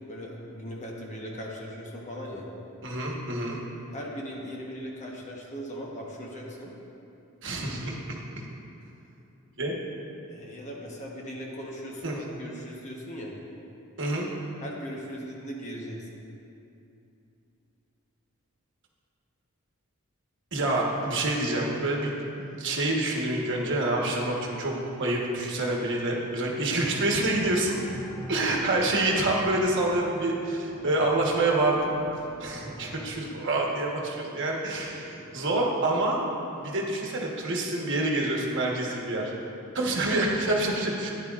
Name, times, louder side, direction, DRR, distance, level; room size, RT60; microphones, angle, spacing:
voice 1, 0.1-2.4 3.9-6.7 10.3-13.3 14.6-16.1 34.9-35.0, equal, 35° left, -2 dB, 1.1 m, -39 dB
voice 2, 2.8-3.6 7.4-8.2 9.6-9.7 12.0-12.2 14.0-14.3 20.5-27.8 28.3-31.9 32.4-36.2 36.5-39.3 39.7-41.1, right 2 dB, 55° right, -2 dB, 1.3 m, -27 dB
sound 1, 27.2-33.1, equal, 5° left, 1.5 m, -45 dB
12.0 x 10.0 x 2.5 m, 2.8 s
head